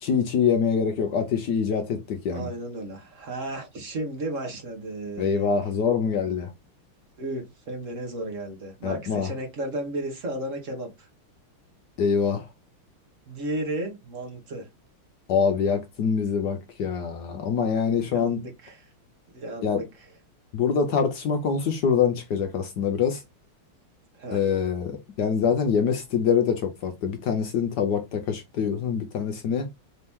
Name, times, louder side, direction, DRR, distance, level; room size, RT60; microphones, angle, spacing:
voice 1, 0.0-2.5 5.2-6.5 8.8-9.3 12.0-12.5 15.3-18.4 19.6-19.8 20.5-23.2 24.3-29.7, left 6 dB, 65° left, 1.1 m, -25 dB
voice 2, 2.3-5.5 7.2-11.1 13.3-14.7 18.0-18.9 19.3-19.8 24.1-24.4, right 1 dB, 45° right, 1.1 m, -34 dB
4.2 x 2.8 x 3.5 m
omnidirectional pair, 2.4 m